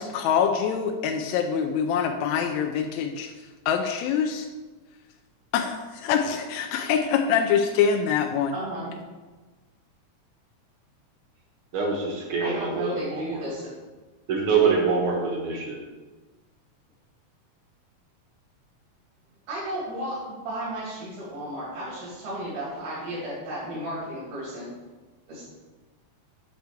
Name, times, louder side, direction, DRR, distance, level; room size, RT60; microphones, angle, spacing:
voice 1, 0.0-3.3 3.7-4.5 5.5-8.5, left 7 dB, 80° left, 3 dB, 1.7 m, -25 dB
voice 2, 8.5-8.9 12.4-13.7 19.5-24.7 25.3-25.5, right 1 dB, 80° right, -8 dB, 3.6 m, -33 dB
voice 3, 11.7-13.4 14.3-15.8, right 5 dB, 60° right, 0 dB, 1.5 m, -25 dB
7.9 x 3.4 x 6.5 m, 1.3 s
omnidirectional pair, 3.5 m